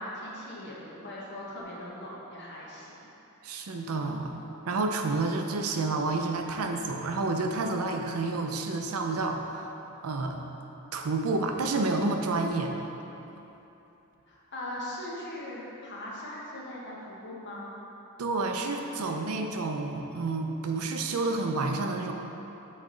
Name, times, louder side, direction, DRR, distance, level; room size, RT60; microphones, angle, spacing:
voice 1, 0.0-3.1 14.3-17.7, left 1 dB, 55° left, -5 dB, 1.1 m, -40 dB
voice 2, 3.4-9.7 10.0-10.4 10.9-12.7 18.2-22.1, right 3 dB, 85° right, 3 dB, 0.5 m, -29 dB
8.3 x 3.2 x 3.8 m, 3.0 s
head